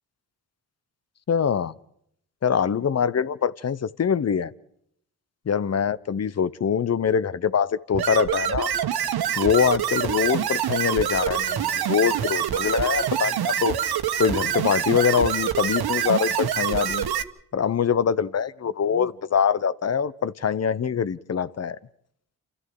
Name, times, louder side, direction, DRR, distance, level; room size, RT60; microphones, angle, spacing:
voice 1, 1.3-1.7 2.4-4.5 5.5-8.7 9.4-13.7 14.2-17.1 17.5-21.8, left 7 dB, 40° left, 1.0 m, -24 dB
sound 1, 7.9-17.2, right 9 dB, 70° right, 1.4 m, -26 dB
28.0 x 14.0 x 7.9 m
supercardioid pair, 55°, 39 cm